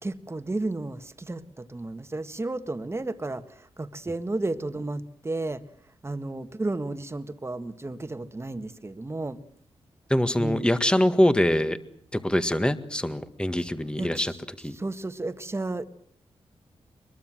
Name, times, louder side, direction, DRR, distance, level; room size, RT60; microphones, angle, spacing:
voice 1, 0.0-5.6 6.0-9.4 10.4-10.7 13.6-13.7 14.0-14.4 14.7-15.9, right 2 dB, 25° right, 10 dB, 1.7 m, -33 dB
voice 2, 10.1-11.8 12.1-14.3 14.6-14.8, left 1 dB, 10° left, 11 dB, 1.8 m, -23 dB
23.5 x 22.0 x 7.7 m, 0.63 s
cardioid pair, 75°, 11 cm